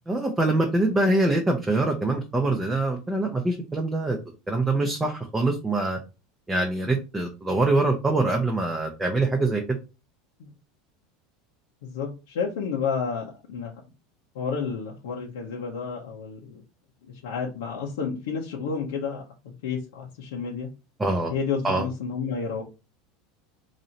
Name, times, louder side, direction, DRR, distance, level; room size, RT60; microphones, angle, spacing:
voice 1, 0.1-4.2 4.5-6.0 6.5-9.6 21.0-21.3 21.6-21.8, right 2 dB, 10° right, 1 dB, 0.6 m, -24 dB
voice 2, 11.8-13.7 14.3-16.6 17.2-19.2 19.6-20.7 21.3-22.6, left 5 dB, 90° left, -3 dB, 0.9 m, -30 dB
3.1 x 2.7 x 4.0 m, 0.29 s
supercardioid pair, 150°, 0 cm